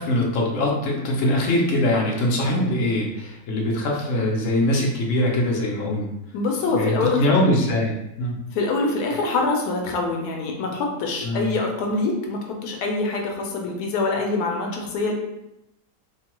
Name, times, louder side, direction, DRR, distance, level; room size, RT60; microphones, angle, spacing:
voice 1, 0.0-6.1 6.7-7.9 8.2-8.4 11.2-11.5, left 1 dB, 65° left, -1 dB, 0.9 m, -22 dB
voice 2, 6.3-7.4 8.5-15.1, left 3 dB, 85° left, 1 dB, 1.1 m, -25 dB
3.1 x 2.2 x 2.9 m, 0.89 s
omnidirectional pair, 1.6 m